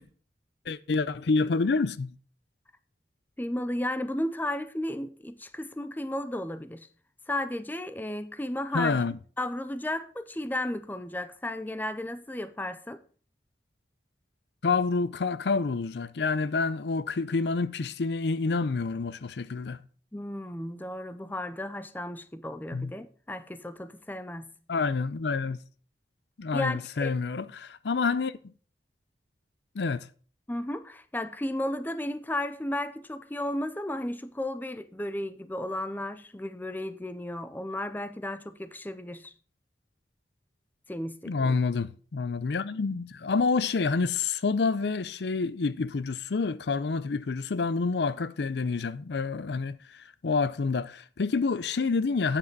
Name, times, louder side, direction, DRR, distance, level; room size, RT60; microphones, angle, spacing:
voice 1, 0.7-2.1 8.7-9.2 14.6-19.8 22.7-22.9 24.7-25.6 26.4-28.3 29.7-30.1 41.2-52.4, left 4 dB, 70° left, 0.5 m, -28 dB
voice 2, 3.4-6.9 7.3-9.0 9.4-13.0 20.1-24.5 26.5-27.1 30.5-39.3 40.9-41.5, left 1 dB, 10° left, 0.5 m, -34 dB
8.8 x 7.4 x 4.6 m
head